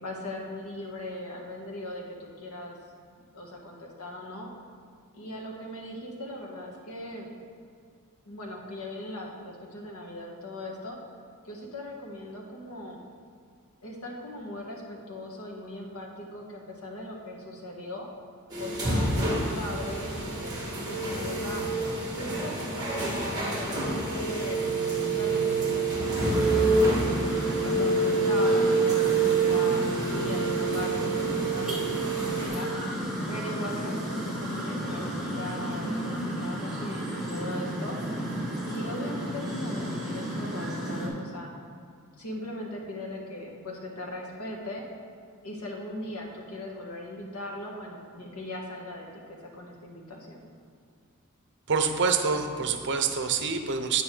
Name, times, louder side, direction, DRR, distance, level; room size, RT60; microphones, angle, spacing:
voice 1, 0.0-2.8 3.3-4.5 5.1-7.4 8.2-11.0 11.4-13.0 13.8-18.1 18.6-21.6 22.2-24.7 25.1-32.7 33.3-38.0 38.6-41.5 42.2-44.8 45.4-50.4, left 1 dB, 85° left, 0 dB, 1.6 m, -39 dB
sound 1, 18.5-32.5, right 3 dB, 20° right, 2.2 m, -27 dB
sound 2, 26.0-41.1, equal, ahead, 2.2 m, -33 dB
voice 2, 51.7-54.0, right 5 dB, 55° right, 6 dB, 0.8 m, -26 dB
9.1 x 8.6 x 3.9 m, 2.3 s
head